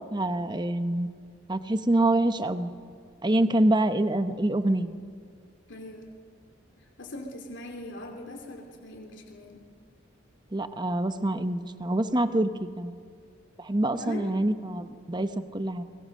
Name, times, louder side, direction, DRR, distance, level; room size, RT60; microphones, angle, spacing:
voice 1, 0.1-1.1 1.5-2.7 3.2-5.0 10.5-12.5 12.8-13.0 13.6-15.8, right 1 dB, 20° right, 10 dB, 1.0 m, -26 dB
voice 2, 5.7-6.1 6.8-9.6 14.0-14.3, left 1 dB, 65° left, 1 dB, 2.9 m, -41 dB
29.0 x 22.5 x 6.5 m, 2.2 s
head